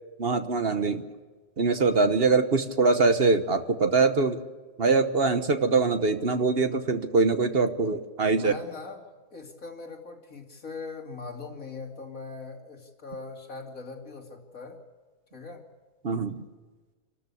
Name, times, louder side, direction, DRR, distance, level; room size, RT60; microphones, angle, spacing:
voice 1, 0.2-1.0 1.6-4.4 4.8-8.5 16.0-16.4, right 4 dB, 45° right, 8 dB, 1.2 m, -23 dB
voice 2, 8.3-9.0 9.3-14.8 15.3-15.6, left 4 dB, 75° left, 2 dB, 3.1 m, -40 dB
27.5 x 13.0 x 8.4 m, 1.3 s
omnidirectional pair, 1.4 m